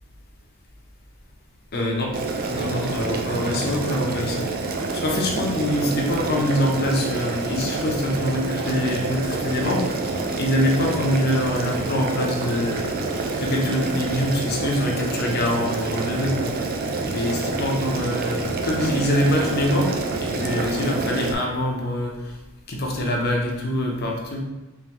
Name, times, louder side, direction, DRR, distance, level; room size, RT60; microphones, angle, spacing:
voice 1, 1.7-2.2 2.5-4.5 4.8-16.5 17.1-22.4 22.7-24.4, left 1 dB, 50° left, 0 dB, 0.7 m, -25 dB
Boiling, 2.1-21.3, right 3 dB, 45° right, 0.4 m, -27 dB
3.5 x 3.4 x 3.0 m, 1.1 s
head